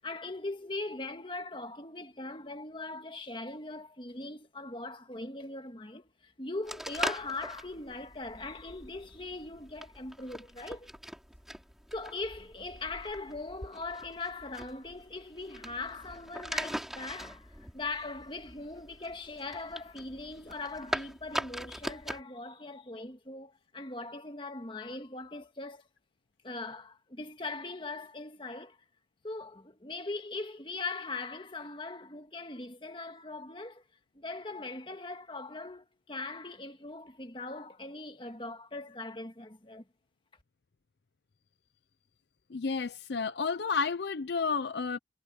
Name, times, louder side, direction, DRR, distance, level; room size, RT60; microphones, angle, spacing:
voice 1, 0.0-10.9 11.9-25.8 26.4-28.8 29.2-33.8 34.1-39.8, left 3 dB, 25° left, 1.8 m, -40 dB
sound 1, 6.6-22.2, equal, ahead, 3.5 m, -41 dB
voice 2, 42.5-45.0, left 5 dB, 65° left, 0.5 m, -31 dB
head